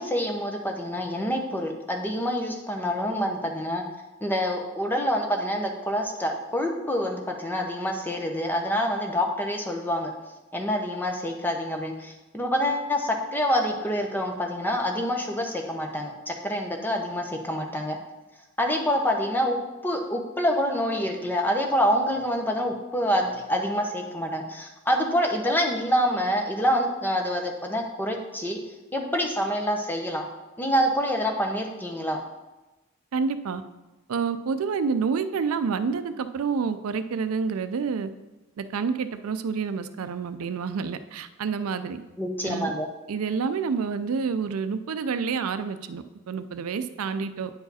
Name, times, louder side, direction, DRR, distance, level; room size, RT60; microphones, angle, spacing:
voice 1, 0.0-3.8 4.2-10.1 10.5-18.0 18.6-28.6 28.9-30.2 30.6-32.2 42.2-42.9, equal, 10° left, 3 dB, 0.8 m, -26 dB
voice 2, 33.1-33.6 34.1-38.1 38.6-42.0 42.4-42.7 43.1-47.5, right 5 dB, 80° right, 11 dB, 0.4 m, -28 dB
9.4 x 4.8 x 4.1 m, 1.1 s
head